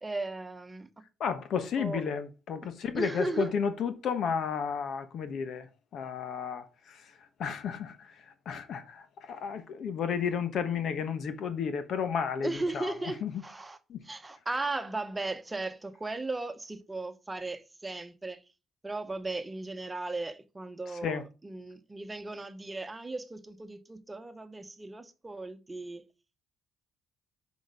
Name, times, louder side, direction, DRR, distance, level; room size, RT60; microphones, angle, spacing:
voice 1, 0.0-0.9 1.8-2.1 2.9-3.5 12.4-13.8 14.0-18.4 18.8-26.1, right 2 dB, 20° right, 1.0 m, -36 dB
voice 2, 1.2-5.7 5.9-7.0 7.4-8.1 8.5-12.9 13.2-13.3 13.9-14.0 21.0-21.2, left 6 dB, 70° left, 1.1 m, -32 dB
6.3 x 5.2 x 5.1 m
cardioid pair, 90°, 0 cm